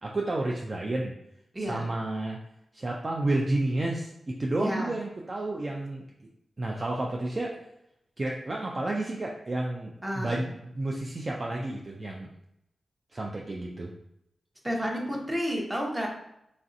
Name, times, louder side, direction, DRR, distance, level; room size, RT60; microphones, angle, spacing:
voice 1, 0.0-1.1 1.6-2.4 2.7-6.3 6.6-7.6 8.2-12.3 13.1-13.9, right 2 dB, 40° right, -1 dB, 0.4 m, -31 dB
voice 2, 1.5-1.9 4.6-4.9 10.0-10.4 14.6-16.1, equal, 20° right, -1 dB, 0.8 m, -31 dB
3.1 x 2.5 x 2.6 m, 0.80 s
cardioid pair, 65°, 0 cm